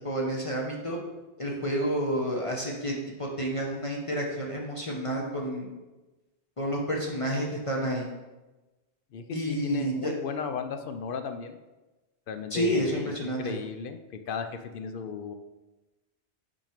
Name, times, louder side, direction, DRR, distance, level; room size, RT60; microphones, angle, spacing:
voice 1, 0.0-1.0 1.4-5.7 6.6-8.1 9.3-10.1 12.5-13.5, equal, 30° left, -2 dB, 0.9 m, -30 dB
voice 2, 9.1-11.6 12.3-14.5 14.7-15.4, left 6 dB, 60° left, 8 dB, 0.6 m, -35 dB
6.1 x 4.4 x 5.0 m, 1.1 s
omnidirectional pair, 1.1 m